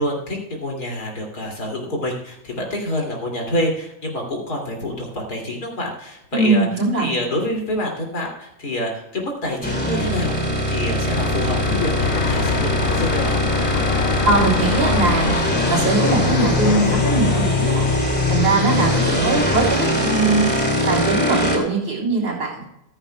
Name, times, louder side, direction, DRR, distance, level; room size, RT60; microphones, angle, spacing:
voice 1, 0.0-6.7 7.0-13.3 19.0-19.3, left 1 dB, 55° left, 0 dB, 3.2 m, -27 dB
voice 2, 6.3-7.1 14.2-15.3 15.7-17.9 18.3-20.5 20.9-22.6, right 3 dB, 75° right, -3 dB, 4.2 m, -21 dB
sound 1, 9.6-21.6, left 1 dB, 5° left, 2.3 m, -21 dB
Fixed-wing aircraft airplane, 11.1-19.8, left 12 dB, 80° left, 1.2 m, -27 dB
14.5 x 14.0 x 2.3 m, 0.84 s
omnidirectional pair, 2.1 m